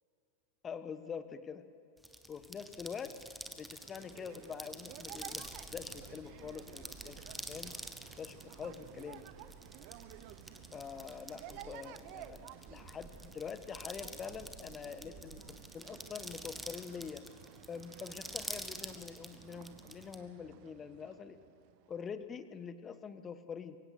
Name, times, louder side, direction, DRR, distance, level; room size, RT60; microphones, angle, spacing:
voice 1, 0.6-1.6 2.3-3.1 3.5-7.2 7.5-7.7 8.2-9.2 10.7-17.2 17.7-21.4 21.9-23.8, left 6 dB, 20° left, 12 dB, 1.2 m, -45 dB
sound 1, 2.0-20.2, right 1 dB, 5° right, 1.4 m, -47 dB
sound 2, 3.7-22.2, right 14 dB, 45° right, 0.8 m, -54 dB
sound 3, 5.2-15.5, right 3 dB, 25° right, 4.8 m, -58 dB
23.5 x 17.5 x 6.9 m, 2.5 s
figure-of-eight pair, 90°, 0 cm